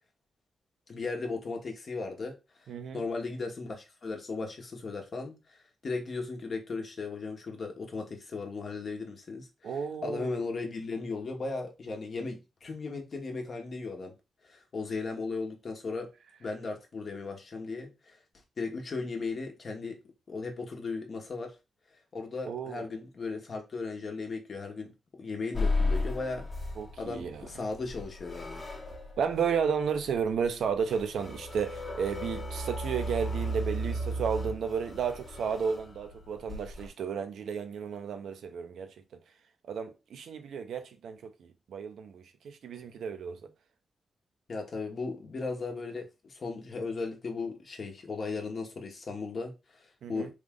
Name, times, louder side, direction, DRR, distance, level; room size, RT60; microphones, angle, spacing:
voice 1, 0.9-2.3 2.9-14.1 14.4-16.1 16.4-18.2 18.6-20.0 20.3-21.5 22.1-24.9 25.2-26.4 27.0-28.6 44.5-50.3, left 4 dB, 55° left, 1.1 m, -36 dB
voice 2, 2.7-3.0 9.6-10.4 22.4-22.8 26.8-27.4 29.2-38.9 39.7-43.4 50.0-50.3, right 6 dB, 85° right, 0.6 m, -33 dB
sound 1, 25.5-36.9, left 1 dB, 30° left, 1.1 m, -35 dB
3.5 x 2.4 x 3.5 m
cardioid pair, 80°, 0 cm